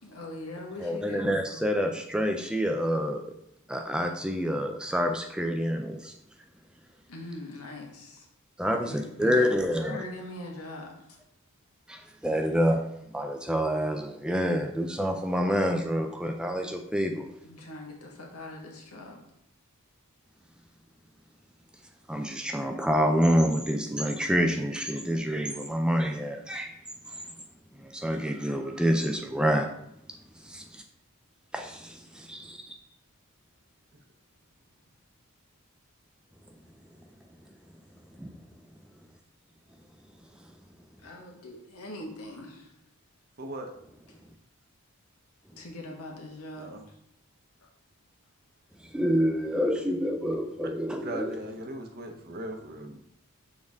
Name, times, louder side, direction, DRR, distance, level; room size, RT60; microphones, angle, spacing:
voice 1, 0.0-1.4 7.1-8.3 8.6-11.2 17.4-19.2 32.3-32.6 41.0-42.7 45.5-47.0, left 1 dB, 85° left, 0 dB, 1.6 m, -42 dB
voice 2, 0.8-3.3 3.7-6.1 8.6-10.0 11.9-12.8 13.1-17.3 22.1-26.7 27.8-29.7 30.4-30.8 31.5-32.8 38.2-38.3 48.9-51.3, equal, 5° right, 4 dB, 0.4 m, -27 dB
voice 3, 43.4-43.7 46.6-46.8 51.0-53.0, right 1 dB, 45° right, 4 dB, 0.8 m, -38 dB
6.5 x 4.7 x 3.6 m, 0.77 s
head